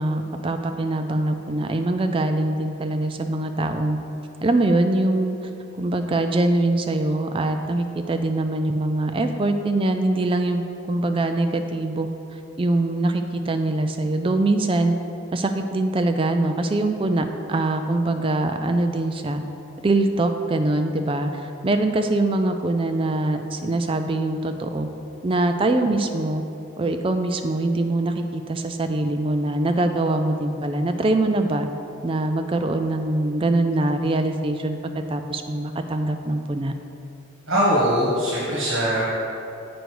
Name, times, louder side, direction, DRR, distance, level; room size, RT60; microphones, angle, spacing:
voice 1, 0.0-4.0 4.4-5.4 5.8-12.1 12.6-14.9 15.3-19.4 19.8-24.9 25.2-26.4 26.8-31.7 32.0-36.7, right 2 dB, 25° right, 6 dB, 0.3 m, -23 dB
voice 2, 37.5-39.0, equal, 55° right, -8 dB, 1.6 m, -21 dB
7.8 x 5.2 x 4.7 m, 2.8 s
head